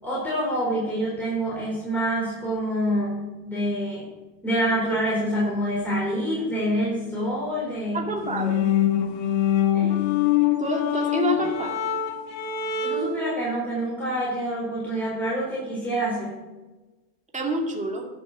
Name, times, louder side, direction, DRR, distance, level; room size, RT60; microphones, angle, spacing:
voice 1, 0.0-3.1 3.4-4.1 4.4-8.0 8.6-8.7 9.7-10.0 12.8-16.3, equal, 5° left, -7 dB, 4.5 m, -26 dB
voice 2, 7.9-8.6 10.6-11.8 17.3-18.1, right 2 dB, 15° right, 0 dB, 2.3 m, -27 dB
sound 1, 8.2-13.3, left 10 dB, 75° left, 1.6 m, -24 dB
11.5 x 7.0 x 6.2 m, 1.1 s
cardioid pair, 125°, 48 cm